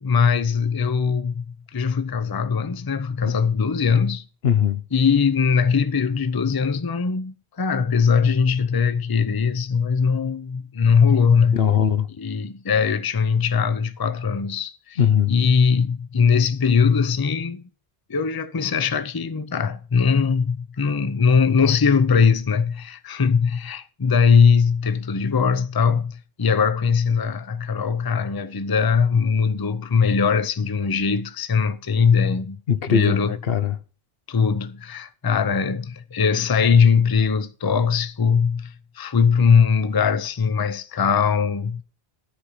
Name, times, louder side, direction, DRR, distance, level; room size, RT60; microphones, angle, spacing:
voice 1, 0.0-1.4 1.7-4.2 4.9-11.6 12.2-15.0 15.3-17.6 18.1-32.6 32.9-33.3 34.3-41.8, left 6 dB, 25° left, 0.6 m, -20 dB
voice 2, 4.4-4.8 11.5-12.1 15.0-15.3 32.7-33.8, left 8 dB, 70° left, 1.0 m, -20 dB
13.5 x 4.9 x 6.4 m
omnidirectional pair, 1.0 m